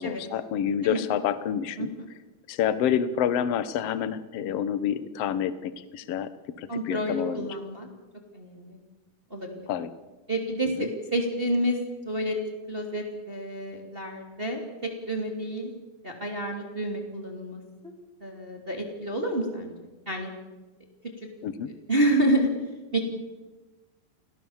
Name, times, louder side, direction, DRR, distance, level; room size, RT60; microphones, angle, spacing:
voice 1, 0.0-1.9 2.5-6.3 6.6-7.5 9.7-9.9 10.8-10.9 21.4-21.7, left 9 dB, 65° left, 13 dB, 1.6 m, -28 dB
voice 2, 6.7-7.9 8.3-8.8 9.3-9.5 10.3-11.8 12.0-12.4 12.7-15.7 16.0-17.9 18.2-19.7 20.1-20.3 21.9-22.5 22.9-23.2, right 1 dB, 15° right, 2 dB, 2.7 m, -29 dB
28.0 x 17.5 x 7.3 m, 1.2 s
omnidirectional pair, 4.1 m